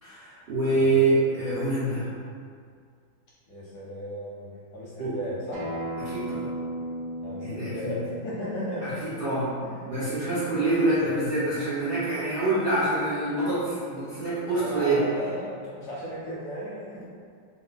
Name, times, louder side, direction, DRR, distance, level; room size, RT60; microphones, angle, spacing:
voice 1, 0.0-2.1 5.0-5.2 6.0-6.5 7.4-8.0 8.8-9.5 9.8-15.0, right 2 dB, 75° right, -13 dB, 0.5 m, -26 dB
voice 2, 0.7-1.1 3.5-5.7 7.2-9.0 9.6-9.9 10.7-11.1 14.5-17.0, equal, 70° left, -6 dB, 1.0 m, -36 dB
Acoustic guitar, 5.5-10.7, right 1 dB, 55° right, 1.2 m, -37 dB
3.8 x 2.3 x 3.9 m, 2.2 s
omnidirectional pair, 2.4 m